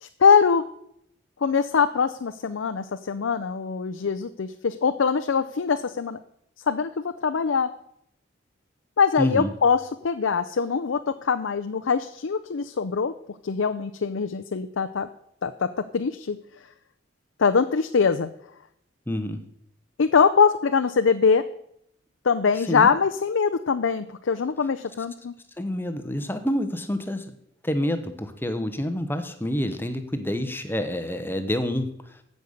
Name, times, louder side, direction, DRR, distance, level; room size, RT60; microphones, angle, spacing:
voice 1, 0.0-0.6 1.4-6.2 6.7-7.7 9.0-13.1 13.4-15.1 15.4-16.4 17.4-18.3 20.0-21.5 22.2-25.3, left 5 dB, 90° left, 8 dB, 0.5 m, -23 dB
voice 2, 9.2-9.5 19.1-19.4 22.6-22.9 25.6-27.3 27.6-32.1, equal, 10° left, 8 dB, 0.9 m, -28 dB
15.0 x 5.4 x 6.5 m, 0.74 s
head